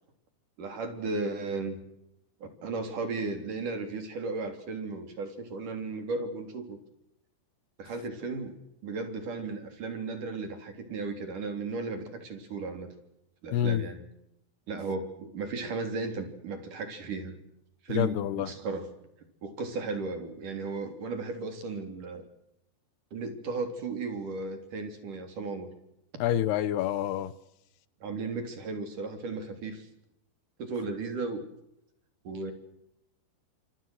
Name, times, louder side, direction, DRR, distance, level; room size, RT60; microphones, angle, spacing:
voice 1, 0.6-1.8 2.4-6.8 7.8-8.6 8.8-12.9 13.4-14.0 14.7-17.4 17.8-18.9 19.4-22.2 23.1-25.7 28.0-29.9 30.6-31.4 32.2-32.5, right 3 dB, 50° right, 7 dB, 4.9 m, -35 dB
voice 2, 13.5-13.9 17.9-18.5 26.2-27.3, left 11 dB, 75° left, 16 dB, 3.0 m, -27 dB
27.0 x 24.5 x 6.4 m, 0.82 s
omnidirectional pair, 4.9 m